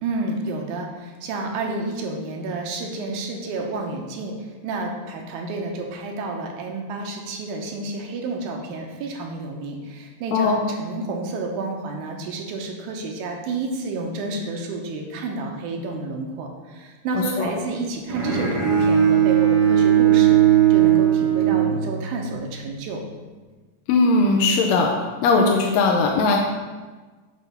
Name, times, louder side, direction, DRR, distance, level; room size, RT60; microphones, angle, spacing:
voice 1, 0.0-23.0, right 3 dB, 75° right, 1 dB, 2.2 m, -30 dB
voice 2, 10.3-10.7 17.1-17.5 23.9-24.9 25.2-26.4, left 3 dB, 75° left, 0 dB, 1.7 m, -19 dB
Bowed string instrument, 18.1-22.3, right 10 dB, 60° right, 1.0 m, -18 dB
7.4 x 3.5 x 5.7 m, 1.3 s
omnidirectional pair, 3.7 m